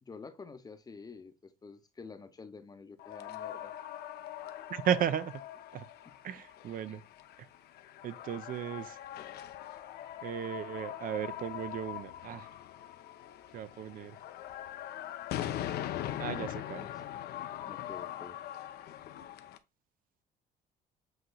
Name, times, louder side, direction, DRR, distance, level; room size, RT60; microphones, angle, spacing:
voice 1, 0.0-3.7 6.0-6.2 6.9-7.0 16.3-16.9 17.6-18.4, left 4 dB, 20° left, 0.7 m, -49 dB
sound 1, 3.0-19.6, left 12 dB, 70° left, 0.6 m, -42 dB
voice 2, 4.7-5.4 5.7-5.9 6.2-7.0 8.0-9.0 10.2-12.5 13.5-14.2 16.2-16.9, right 9 dB, 55° right, 0.5 m, -35 dB
7.9 x 2.9 x 2.2 m
cardioid pair, 110°, 17 cm